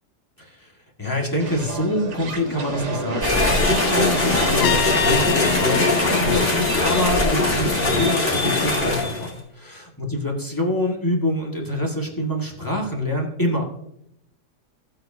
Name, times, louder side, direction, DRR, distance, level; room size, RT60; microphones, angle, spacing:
voice 1, 0.4-0.7 1.0-13.6, left 1 dB, 10° left, -1 dB, 1.8 m, -26 dB
sound 1, 1.4-6.6, right 3 dB, 75° right, 1.9 m, -30 dB
sound 2, 3.2-9.3, left 2 dB, 35° left, 2.0 m, -21 dB
Trumpet, 4.6-7.5, left 9 dB, 75° left, 1.2 m, -28 dB
16.0 x 7.9 x 2.8 m, 0.77 s
omnidirectional pair, 1.8 m